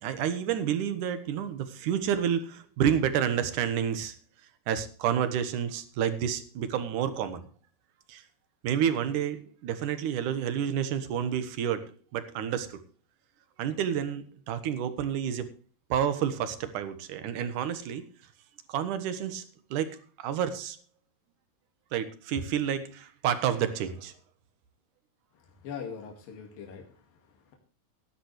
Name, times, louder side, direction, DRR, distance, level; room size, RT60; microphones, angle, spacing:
voice 1, 0.0-4.2 4.7-7.4 8.1-8.2 8.6-12.8 13.6-15.5 15.9-18.0 18.7-19.4 19.7-20.8 21.9-24.1, right 9 dB, 70° right, 11 dB, 2.7 m, -29 dB
voice 2, 25.6-27.6, left 6 dB, 80° left, 2 dB, 3.9 m, -42 dB
16.5 x 11.5 x 3.2 m, 0.38 s
omnidirectional pair, 4.0 m